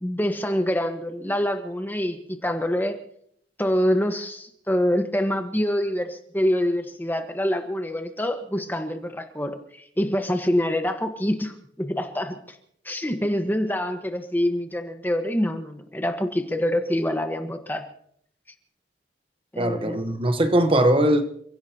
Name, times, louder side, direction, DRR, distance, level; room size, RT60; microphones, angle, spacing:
voice 1, 0.0-3.0 3.6-12.6 12.8-17.9 19.5-20.0, equal, 10° left, 1.3 m, -26 dB
voice 2, 19.6-21.2, right 1 dB, 30° right, 1.1 m, -20 dB
29.5 x 16.5 x 2.9 m
head